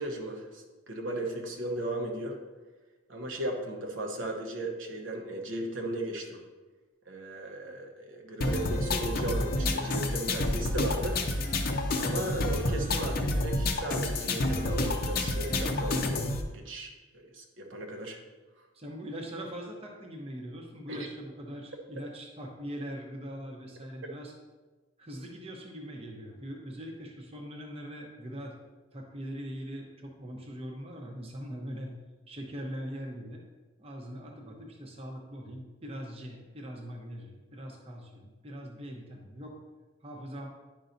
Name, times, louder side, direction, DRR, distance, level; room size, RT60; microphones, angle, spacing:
voice 1, 0.0-2.4 3.1-6.4 7.1-11.2 12.0-18.2 20.9-21.1, right 1 dB, 70° right, 2 dB, 0.9 m, -36 dB
sound 1, 8.4-16.4, left 2 dB, 45° left, 0.6 m, -29 dB
voice 2, 18.7-24.3 25.0-28.6 28.9-31.9 32.3-33.4 33.8-39.6 40.0-40.5, equal, 30° right, 0 dB, 0.8 m, -41 dB
10.0 x 5.4 x 2.6 m, 1.3 s
head